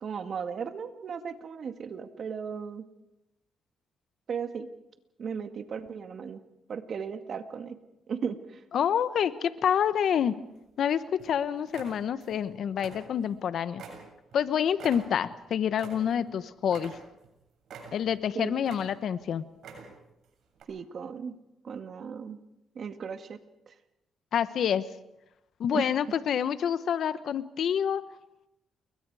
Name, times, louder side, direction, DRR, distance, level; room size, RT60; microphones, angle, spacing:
voice 1, 0.0-2.8 4.3-4.7 5.2-6.4 6.7-7.8 8.1-8.6 18.4-18.5 20.7-21.3 21.6-22.4 22.8-23.4 23.7-23.8 25.7-25.9, right 6 dB, 55° right, 7 dB, 2.0 m, -36 dB
voice 2, 8.7-10.4 10.8-13.8 14.3-17.0 17.9-19.4 24.3-24.8 25.6-28.0, left 8 dB, 65° left, 13 dB, 1.1 m, -27 dB
sound 1, 10.2-10.8 11.2-11.4 11.7-12.4 12.7-13.4 13.8-16.3 16.7-17.3 17.7-18.2 18.6-19.2 19.5-20.1 20.6-20.7, right 5 dB, 70° right, 7.4 m, -46 dB
29.5 x 22.5 x 4.9 m, 0.91 s
cardioid pair, 90°, 0 cm